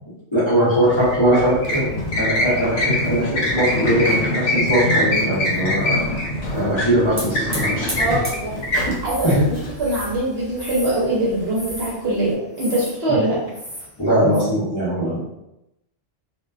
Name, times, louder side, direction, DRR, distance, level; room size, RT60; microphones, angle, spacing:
voice 1, 0.3-1.6 2.2-6.1 6.4-8.2 8.9-9.0 9.2-9.4 14.0-15.3, right 1 dB, 30° left, -11 dB, 0.7 m, -20 dB
sound 1, 0.8-10.2, left 1 dB, 85° left, 1.0 m, -23 dB
Hiss / Fire, 5.5-12.3, equal, 25° right, 0.3 m, -36 dB
voice 2, 8.0-8.5 9.0-13.4, right 1 dB, 60° right, -5 dB, 0.8 m, -23 dB
sound 2, 9.0-9.4 9.8-11.1 11.5-12.0 12.6-13.0 13.5-13.9 14.3-14.4, equal, 60° left, 1.1 m, -35 dB
2.4 x 2.2 x 2.3 m, 0.89 s
omnidirectional pair, 1.4 m